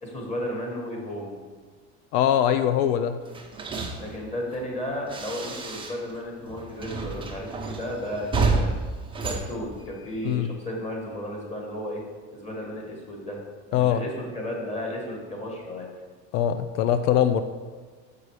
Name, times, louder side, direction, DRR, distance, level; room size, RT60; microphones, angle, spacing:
voice 1, 0.0-1.4 4.0-8.8 9.2-12.0 12.3-13.4 13.7-15.9, left 1 dB, 20° left, -1 dB, 1.8 m, -34 dB
voice 2, 2.1-3.2 10.2-10.5 13.7-14.0 16.3-17.4, left 10 dB, 85° left, 10 dB, 0.5 m, -22 dB
sound 1, 3.3-6.2 6.5-10.3, right 3 dB, 15° right, 0.7 m, -30 dB
6.9 x 4.9 x 4.8 m, 1.5 s
cardioid pair, 125°, 36 cm